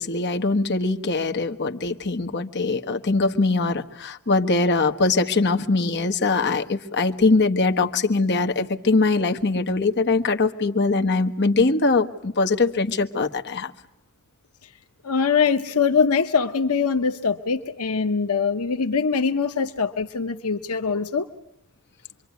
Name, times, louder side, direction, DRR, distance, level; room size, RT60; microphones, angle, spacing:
voice 1, 0.0-13.7, left 3 dB, 50° left, 5 dB, 1.4 m, -22 dB
voice 2, 15.0-21.3, left 5 dB, 75° left, 6 dB, 1.0 m, -23 dB
26.5 x 23.5 x 9.5 m, 0.81 s
head